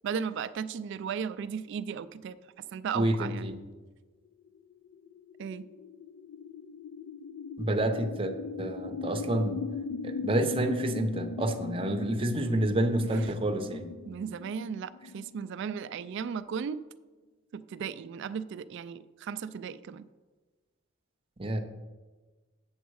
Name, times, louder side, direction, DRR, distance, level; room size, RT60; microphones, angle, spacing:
voice 1, 0.0-3.5 5.4-5.7 12.4-12.8 13.1-13.2 14.1-16.8 17.5-20.1, right 6 dB, 60° right, 14 dB, 0.3 m, -36 dB
voice 2, 2.9-3.5 7.6-9.6 10.0-13.9 21.4-21.6, right 1 dB, 25° right, 6 dB, 0.7 m, -29 dB
sound 1, 4.5-16.6, left 4 dB, 90° left, 0.4 m, -39 dB
8.0 x 7.2 x 4.7 m, 1.3 s
head